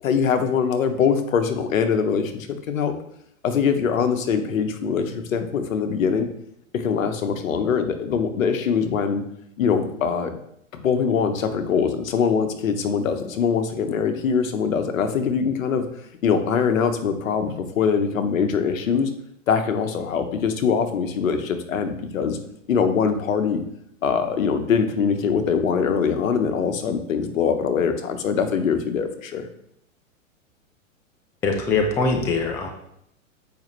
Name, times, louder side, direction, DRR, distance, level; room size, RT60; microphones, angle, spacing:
voice 1, 0.0-2.9 3.4-6.3 6.8-9.2 9.6-10.3 10.8-15.8 16.2-19.1 19.5-22.4 22.7-23.6 24.0-29.5, left 6 dB, 75° left, 7 dB, 1.1 m, -23 dB
voice 2, 31.4-32.7, left 4 dB, 5° left, 3 dB, 0.3 m, -22 dB
7.2 x 5.1 x 3.2 m, 0.75 s
hypercardioid pair, 120°, 40 cm